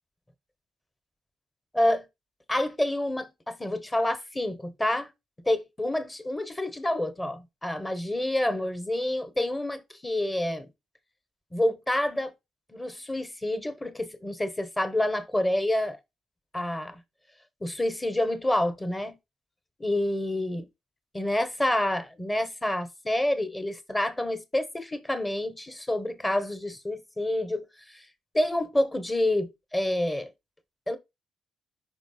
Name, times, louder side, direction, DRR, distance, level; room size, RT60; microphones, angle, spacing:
voice 1, 1.7-2.1 2.5-5.1 5.5-10.7 11.5-12.3 12.7-16.0 16.5-17.0 17.6-19.2 19.8-20.7 21.1-27.6 27.9-28.0 28.3-30.3 30.9-31.0, left 1 dB, 15° left, 1.0 m, -28 dB
5.4 x 4.3 x 4.2 m
cardioid pair, 120°, 0 cm